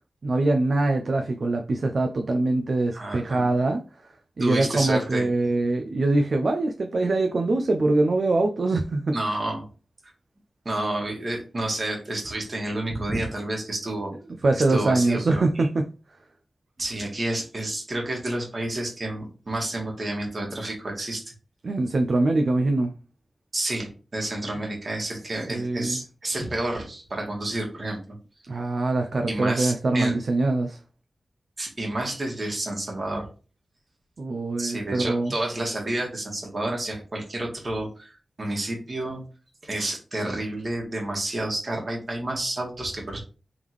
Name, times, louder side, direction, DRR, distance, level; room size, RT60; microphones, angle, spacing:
voice 1, 0.2-3.8 4.4-9.2 14.4-15.9 21.6-22.9 25.5-26.0 28.5-30.8 34.2-35.3, right 2 dB, 60° right, 0.5 m, -23 dB
voice 2, 2.9-3.6 4.4-5.3 9.1-9.7 10.6-14.1 14.6-15.7 16.8-21.2 23.5-28.2 29.3-30.1 31.6-33.3 34.6-39.2 39.6-43.2, right 1 dB, 45° right, 1.6 m, -30 dB
3.6 x 3.5 x 3.1 m
wide cardioid pair, 70°, 0 cm